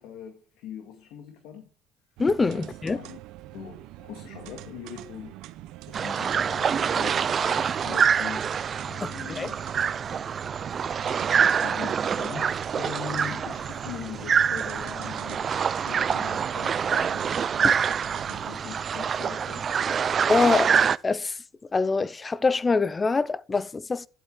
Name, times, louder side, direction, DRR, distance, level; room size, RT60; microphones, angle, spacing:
voice 1, 0.0-1.7 2.5-3.2 3.5-5.5 5.9-8.5 8.9-9.6 10.8-11.0 11.6-15.5 15.8-17.4 18.3-19.8, left 8 dB, 80° left, 2.0 m, -41 dB
voice 2, 2.2-3.0 9.0-9.5 17.6-17.8 20.3-20.7 21.0-21.4 21.7-24.1, left 4 dB, 25° left, 0.6 m, -24 dB
sound 1, 2.2-18.6, right 15 dB, 75° right, 0.8 m, -44 dB
sound 2, 5.9-21.0, right 7 dB, 40° right, 0.4 m, -26 dB
11.5 x 8.1 x 4.8 m
supercardioid pair, 95°, 0 cm